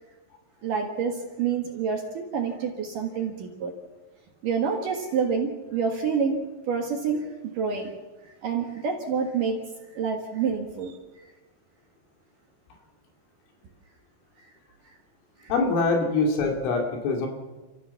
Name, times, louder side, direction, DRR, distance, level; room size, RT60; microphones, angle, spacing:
voice 1, 0.6-3.7 4.4-7.9 8.2-9.6 9.9-11.0 15.4-15.5, right 6 dB, 60° right, 2 dB, 2.5 m, -28 dB
voice 2, 15.5-17.3, left 3 dB, 80° left, 2 dB, 5.2 m, -24 dB
28.0 x 15.0 x 7.1 m, 1.2 s
omnidirectional pair, 5.6 m